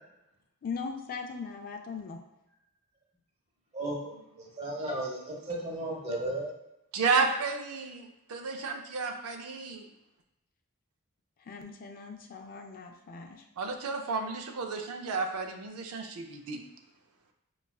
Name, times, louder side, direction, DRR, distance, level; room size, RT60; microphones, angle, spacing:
voice 1, 0.6-2.2 11.4-13.4, left 5 dB, 40° left, 3 dB, 0.4 m, -39 dB
voice 2, 3.7-6.5, right 1 dB, 30° right, -2 dB, 0.9 m, -35 dB
voice 3, 6.9-9.9 13.6-16.6, right 4 dB, 85° right, 3 dB, 0.5 m, -32 dB
5.2 x 2.3 x 2.3 m, 0.88 s
head